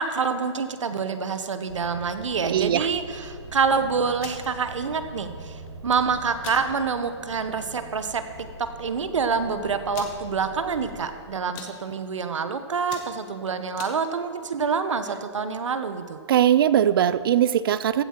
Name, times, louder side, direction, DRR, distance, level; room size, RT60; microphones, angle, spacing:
voice 1, 0.0-16.2, right 5 dB, 85° right, 10 dB, 1.0 m, -27 dB
Aircraft, 1.7-11.0, right 2 dB, 25° right, 1.7 m, -43 dB
voice 2, 2.5-2.9 16.3-18.0, right 10 dB, 50° right, 16 dB, 0.4 m, -20 dB
sound 1, 4.1-4.4 5.7-6.0 6.4-6.6 7.1-7.2 7.6-7.8 8.6-8.7 8.9-9.0 9.9-10.2 10.8-11.1 11.4-11.7 12.3-12.5 12.8-14.0, left 8 dB, 25° left, 1.0 m, -41 dB
15.5 x 7.3 x 4.4 m, 2.1 s
hypercardioid pair, 155°, 15 cm